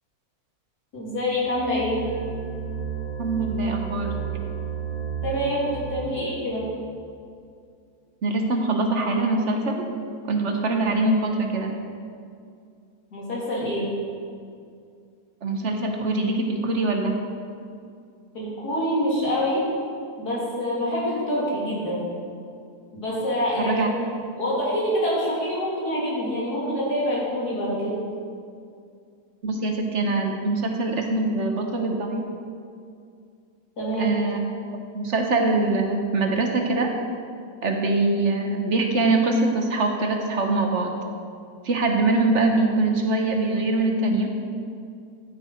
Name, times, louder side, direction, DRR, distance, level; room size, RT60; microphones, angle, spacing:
voice 1, 0.9-2.0 5.2-6.6 13.1-13.9 18.3-19.6 20.2-22.0 22.9-23.9 24.4-27.9 33.8-34.1, equal, 85° left, -6 dB, 3.6 m, -26 dB
sound 1, 1.4-6.5, right 7 dB, 20° left, 2.8 m, -32 dB
voice 2, 3.2-4.2 8.2-9.9 10.3-11.7 15.4-17.2 23.6-23.9 29.4-32.2 34.0-34.4 34.9-36.9 37.6-40.9 41.6-44.3, right 2 dB, 50° right, 3 dB, 1.2 m, -23 dB
11.0 x 9.5 x 4.5 m, 2.4 s
omnidirectional pair, 1.6 m